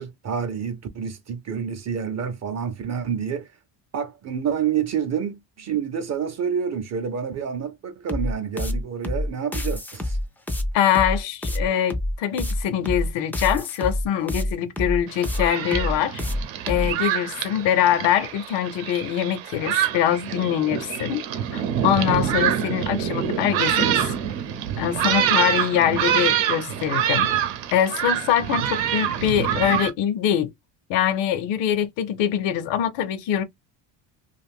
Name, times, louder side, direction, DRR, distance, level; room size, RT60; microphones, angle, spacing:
voice 1, 0.0-3.5 3.9-10.2, right 7 dB, 35° right, 0.6 m, -28 dB
sound 1, 8.1-16.9, left 1 dB, 5° left, 0.3 m, -26 dB
voice 2, 10.7-16.2 16.7-21.2 21.5-24.1 24.8-27.3 27.7-30.5 30.9-33.4, left 10 dB, 75° left, 0.7 m, -23 dB
Thunderstorm, 15.1-29.9, right 10 dB, 80° right, 0.8 m, -25 dB
2.5 x 2.4 x 3.4 m
cardioid pair, 120°, 44 cm